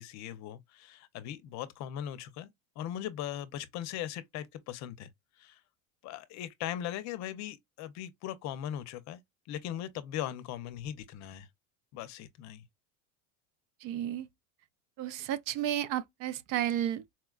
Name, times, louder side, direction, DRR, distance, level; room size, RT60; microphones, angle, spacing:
voice 1, 0.0-2.5 2.8-5.1 5.4-5.6 6.0-9.2 9.5-11.5 11.9-12.6, left 11 dB, 45° left, 0.6 m, -39 dB
voice 2, 13.8-14.3 15.0-17.1, right 11 dB, 55° right, 0.6 m, -32 dB
4.3 x 2.1 x 2.3 m
supercardioid pair, 140°, 39 cm